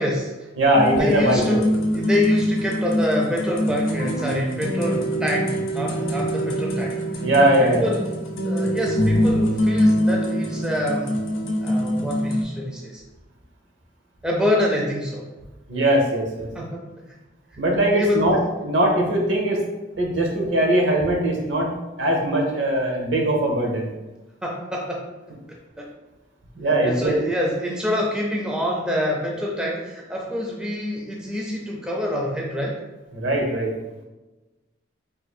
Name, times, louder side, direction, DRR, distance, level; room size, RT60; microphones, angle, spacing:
voice 1, 0.0-0.5 0.9-8.1 8.4-11.2 11.6-13.0 14.2-15.2 16.5-16.9 17.5-17.6 17.9-18.3 24.4-25.1 25.8-25.9 26.8-32.8, left 1 dB, 5° right, -2 dB, 0.4 m, -26 dB
voice 2, 0.6-1.6 7.2-7.9 15.7-16.5 17.6-19.6 20.0-21.7 22.0-23.9 26.6-27.1 33.1-33.7, right 1 dB, 70° right, 0 dB, 0.8 m, -20 dB
sound 1, 0.7-12.4, equal, 85° left, 0.6 m, -24 dB
2.6 x 2.5 x 4.1 m, 1.1 s
head